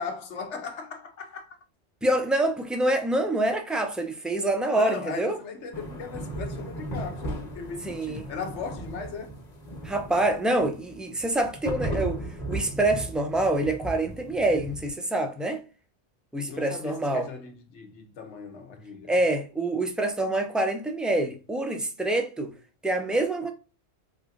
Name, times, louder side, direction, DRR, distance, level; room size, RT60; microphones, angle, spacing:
voice 1, 0.0-1.6 4.7-9.3 16.5-19.1, left 5 dB, 80° left, 1.2 m, -37 dB
voice 2, 2.0-5.3 7.9-8.2 9.8-12.2 12.5-15.6 16.3-17.3 19.1-22.5 22.8-23.5, right 1 dB, ahead, 0.5 m, -26 dB
sound 1, 5.7-14.9, right 1 dB, 40° left, 1.4 m, -36 dB
4.8 x 2.7 x 2.4 m
omnidirectional pair, 1.2 m